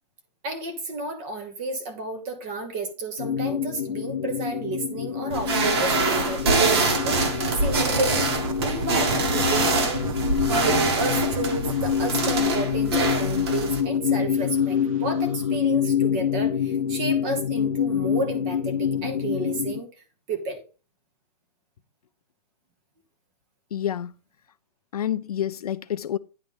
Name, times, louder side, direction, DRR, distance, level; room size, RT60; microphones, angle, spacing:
voice 1, 0.4-10.0 10.4-19.9 20.3-20.6, right 2 dB, 20° right, 1.1 m, -32 dB
sound 1, 3.2-19.8, left 8 dB, 85° left, 1.0 m, -26 dB
sound 2, 5.3-13.8, right 3 dB, 40° right, 1.6 m, -25 dB
sound 3, 7.0-15.6, right 7 dB, 55° right, 0.7 m, -35 dB
voice 2, 23.7-24.1 24.9-26.2, left 10 dB, 65° left, 0.5 m, -28 dB
10.0 x 3.6 x 5.4 m
hypercardioid pair, 175°, 21 cm